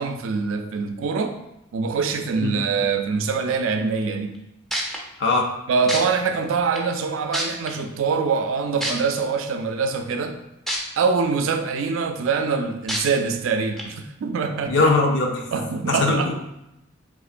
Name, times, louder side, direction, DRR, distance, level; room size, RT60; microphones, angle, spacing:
voice 1, 0.0-1.4 1.7-4.4 5.7-10.4 11.0-14.9 15.5-16.3, right 5 dB, 80° right, 7 dB, 0.4 m, -24 dB
Aerosol Spray.R, 4.3-4.4 4.7-5.0 5.9-6.0 6.8-6.9 7.3-7.7 8.8-8.9 10.7-10.8 11.3-11.4 12.9-13.0 13.8-13.9, right 1 dB, ahead, 0.3 m, -25 dB
voice 2, 5.2-5.5 14.7-15.4 15.9-16.3, left 3 dB, 60° left, 1 dB, 0.5 m, -20 dB
3.6 x 2.9 x 2.4 m, 0.86 s
head